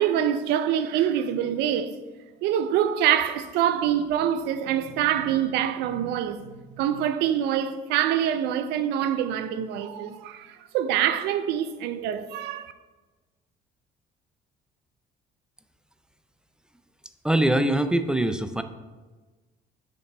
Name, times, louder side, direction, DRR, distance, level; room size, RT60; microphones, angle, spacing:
voice 1, 0.0-1.9 2.4-6.5 6.8-12.7, right 10 dB, 90° right, 0.5 m, -25 dB
voice 2, 17.2-18.6, right 1 dB, 5° right, 0.4 m, -22 dB
6.7 x 5.2 x 4.2 m
cardioid pair, 110°, 17 cm